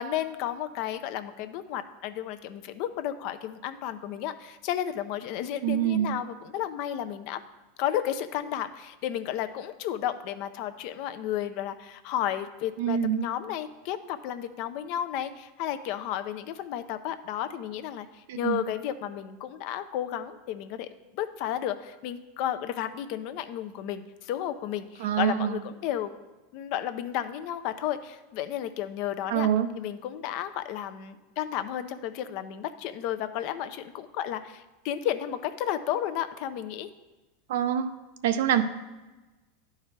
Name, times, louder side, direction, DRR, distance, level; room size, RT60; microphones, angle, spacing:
voice 1, 0.0-7.4 7.8-26.1 26.5-29.5 29.8-36.9, left 11 dB, 60° left, 10 dB, 0.5 m, -33 dB
voice 2, 5.6-6.2 12.8-13.3 18.3-18.6 25.0-25.6 29.3-29.8 37.5-37.9 38.2-38.6, right 10 dB, 75° right, 10 dB, 0.5 m, -25 dB
11.0 x 4.6 x 3.2 m, 1.1 s
supercardioid pair, 120°, 0 cm